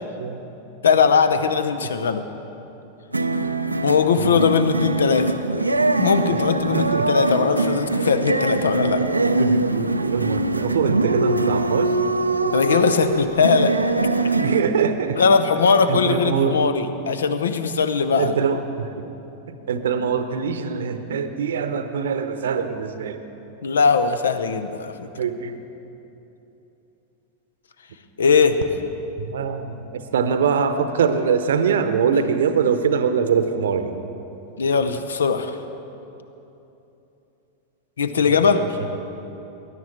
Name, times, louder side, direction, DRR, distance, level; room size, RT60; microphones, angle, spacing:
voice 1, 0.8-2.3 3.8-5.3 6.0-9.0 12.5-13.7 15.2-18.4 23.6-25.1 28.2-28.6 34.6-35.6 38.0-38.6, left 5 dB, 65° left, 10 dB, 0.7 m, -20 dB
sound 1, 3.1-14.6, right 2 dB, 85° right, 0.5 m, -22 dB
voice 2, 6.7-7.1 9.4-11.9 14.4-15.2 15.9-16.6 18.1-18.9 19.7-23.2 25.2-25.5 29.2-34.0 38.2-38.3 38.5-39.0, right 6 dB, 65° right, 9 dB, 0.8 m, -23 dB
19.5 x 11.0 x 4.4 m, 3.0 s
figure-of-eight pair, 90°, 0 cm